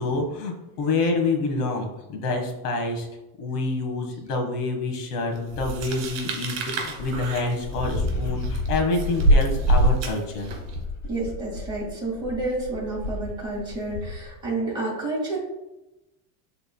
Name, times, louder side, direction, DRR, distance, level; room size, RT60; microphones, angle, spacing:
voice 1, 0.0-3.1 3.4-10.5, left 3 dB, 85° left, 3 dB, 1.7 m, -27 dB
Dog, 5.5-6.1 6.7-6.8 6.9-14.3, left 2 dB, 45° left, 1.6 m, -32 dB
sound 1, 5.6-10.7, right 1 dB, 45° right, 2.2 m, -24 dB
voice 2, 11.0-15.4, right 2 dB, 10° right, -6 dB, 2.0 m, -29 dB
11.0 x 3.9 x 2.3 m, 0.97 s
supercardioid pair, 170°, 44 cm